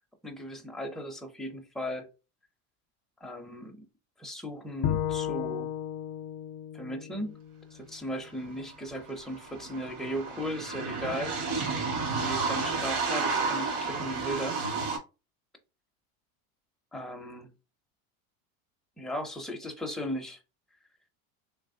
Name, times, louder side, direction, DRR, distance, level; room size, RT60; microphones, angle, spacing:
voice 1, 0.2-2.1 3.2-3.9 4.2-5.7 6.7-7.4 7.7-11.3 12.2-14.6 16.9-17.5 19.0-20.4, equal, ahead, 0.4 m, -37 dB
Bowed string instrument, 4.8-8.1, left 10 dB, 65° left, 0.5 m, -34 dB
sound 1, 8.5-8.6 8.7-15.0, right 4 dB, 80° right, 1.9 m, -31 dB
3.2 x 3.1 x 2.6 m
supercardioid pair, 115°, 44 cm